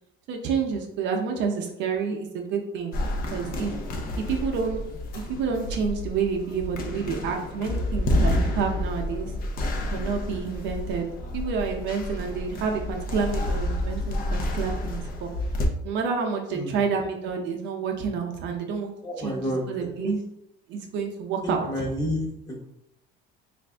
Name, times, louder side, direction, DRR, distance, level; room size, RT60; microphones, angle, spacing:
voice 1, 0.3-2.9 3.3-3.7 4.3-4.8 5.1-9.3 9.9-15.3 15.8-20.2 20.7-21.6, right 5 dB, 60° right, 2 dB, 0.6 m, -29 dB
sound 1, 2.9-15.7, left 1 dB, 45° left, 0.6 m, -29 dB
voice 2, 19.0-20.1 21.4-22.6, equal, 20° left, -3 dB, 1.0 m, -30 dB
3.4 x 2.5 x 3.3 m, 0.80 s
cardioid pair, 140°, 21 cm